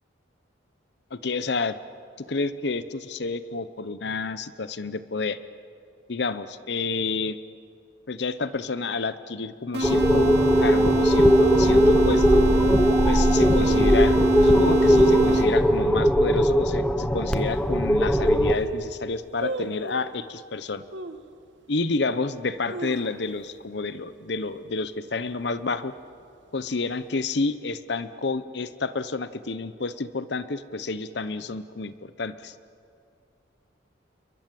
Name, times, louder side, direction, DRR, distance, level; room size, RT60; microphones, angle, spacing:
voice 1, 1.1-1.8 2.3-5.4 6.1-7.4 8.1-12.4 13.0-20.8 21.7-25.9 26.5-32.5, left 3 dB, 60° left, 13 dB, 0.8 m, -30 dB
sound 1, 9.7-15.8, right 2 dB, 60° right, 3.0 m, -24 dB
sound 2, 9.8-18.5, equal, 5° left, 1.0 m, -20 dB
sound 3, 17.4-17.5 18.1-18.2 18.4-18.8 19.4-20.1 20.9-21.3 21.8-21.9 22.5-23.6 23.9-24.0 24.3-24.7 25.1-25.4 26.1-26.8 27.1-27.2, right 2 dB, 75° right, 1.3 m, -36 dB
29.0 x 22.5 x 7.6 m, 2.4 s
head